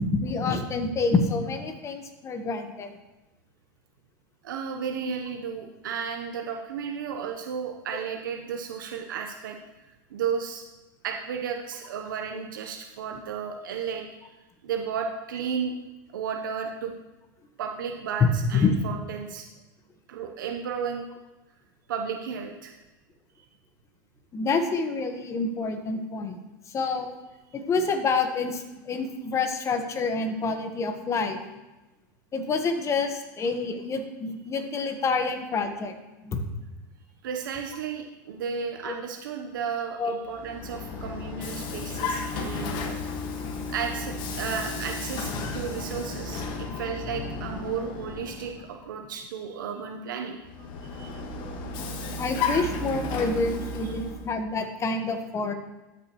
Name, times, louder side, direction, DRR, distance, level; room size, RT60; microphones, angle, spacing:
voice 1, 0.0-2.9 18.2-18.7 24.3-26.4 26.7-27.1 27.5-31.4 32.3-35.9 36.2-36.4 38.8-38.9 40.0-40.2 52.2-55.5, left 4 dB, 30° left, 6 dB, 1.3 m, -27 dB
voice 2, 4.4-9.6 10.1-10.6 11.0-14.1 14.6-15.8 16.1-16.9 17.6-19.5 20.1-21.1 21.9-22.7 23.4-23.5 37.2-43.0 43.7-51.2 53.8-53.9, right 6 dB, 90° right, 3 dB, 0.9 m, -33 dB
Vehicle, 40.2-48.8 50.4-54.3, left 3 dB, 50° left, 1.6 m, -33 dB
13.0 x 6.7 x 3.1 m, 1.1 s
supercardioid pair, 115°, 10 cm